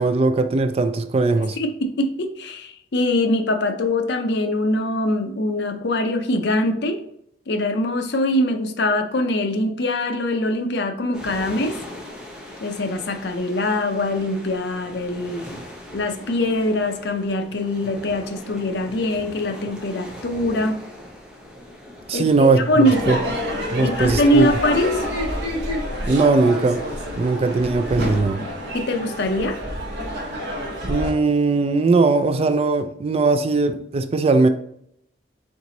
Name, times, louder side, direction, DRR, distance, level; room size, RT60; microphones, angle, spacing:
voice 1, 0.0-1.6 22.1-23.2 23.7-24.5 26.0-26.8 27.2-28.4 30.8-34.5, right 3 dB, 35° right, 9 dB, 0.3 m, -19 dB
voice 2, 1.6-7.0 7.5-11.8 12.6-15.6 15.9-20.8 22.1-23.1 23.8-25.0 28.7-29.6, left 1 dB, 65° left, 5 dB, 0.6 m, -23 dB
sound 1, 11.1-28.2, left 1 dB, 5° right, 0.8 m, -40 dB
Crowd / Fireworks, 22.8-31.1, equal, 65° right, 1.3 m, -28 dB
4.5 x 3.9 x 2.7 m, 0.72 s
head